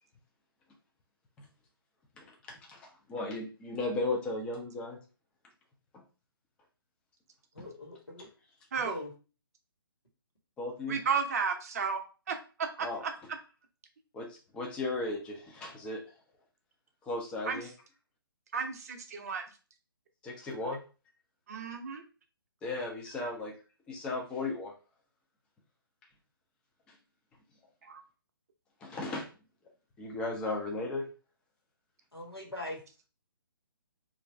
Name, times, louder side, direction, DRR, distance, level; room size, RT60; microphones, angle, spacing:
voice 1, 2.2-5.0 5.9-6.0 7.6-7.7 10.6-11.0 12.8-13.0 14.1-16.0 17.0-17.7 20.2-20.8 22.6-23.5 23.9-24.7 28.8-29.3 30.0-31.1, left 2 dB, 10° left, 0 dB, 0.4 m, -36 dB
voice 2, 7.5-8.3 8.7-9.1 32.1-32.8, left 1 dB, 90° left, -1 dB, 1.4 m, -41 dB
voice 3, 10.9-12.0 12.3-12.9 17.4-17.6 18.5-19.4 21.5-22.0 27.8-28.0, right 6 dB, 40° right, 5 dB, 0.6 m, -33 dB
3.0 x 2.6 x 3.3 m, 0.35 s
figure-of-eight pair, 135°, 12 cm